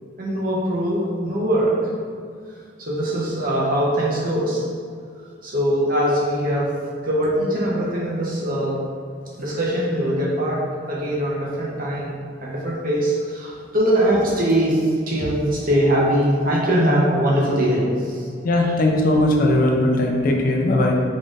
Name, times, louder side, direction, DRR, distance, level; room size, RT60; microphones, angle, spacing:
voice 1, 0.2-1.9 2.8-4.7 5.4-6.7 7.0-8.8 9.4-18.3 18.6-18.8, right 1 dB, 50° right, -5 dB, 0.9 m, -22 dB
voice 2, 18.4-20.9, left 1 dB, 50° left, 1 dB, 0.4 m, -18 dB
3.8 x 3.7 x 2.5 m, 2.2 s
head